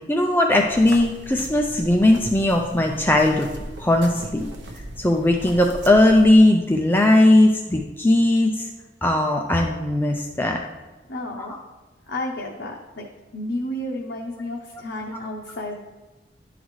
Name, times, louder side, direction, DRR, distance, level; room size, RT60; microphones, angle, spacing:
voice 1, 0.1-3.5 3.8-4.5 5.0-8.7 9.0-10.6 11.4-11.5, left 1 dB, 10° left, 2 dB, 0.4 m, -18 dB
sound 1, 0.6-6.4, right 1 dB, 90° right, 0.7 m, -38 dB
voice 2, 11.1-11.5 12.1-13.1 13.3-15.8, left 1 dB, 75° left, -1 dB, 0.7 m, -31 dB
11.0 x 3.9 x 3.1 m, 1.2 s
head